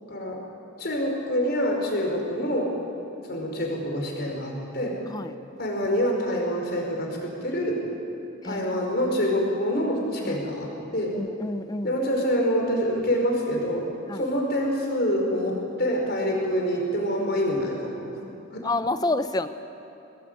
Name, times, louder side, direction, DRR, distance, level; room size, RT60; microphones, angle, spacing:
voice 1, 0.1-0.4 0.8-2.7 3.2-5.0 5.6-7.8 8.4-11.1 11.8-13.9 14.1-18.0 18.5-18.6, equal, 45° left, 0 dB, 5.2 m, -26 dB
voice 2, 11.1-12.0 14.1-14.2 18.6-19.5, left 2 dB, 20° left, 10 dB, 0.8 m, -28 dB
23.0 x 19.5 x 9.2 m, 2.8 s
head